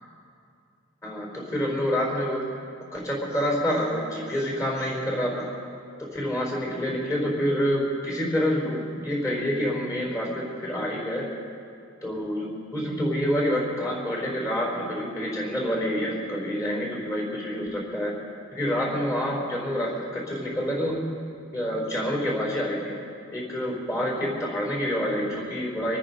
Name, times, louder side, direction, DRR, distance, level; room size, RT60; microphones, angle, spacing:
voice 1, 1.0-2.5 2.9-5.5 6.1-11.3 12.0-18.1 18.5-21.1 21.5-23.0 23.3-26.0, equal, 15° left, -2 dB, 4.5 m, -27 dB
26.0 x 9.7 x 5.4 m, 2.4 s
head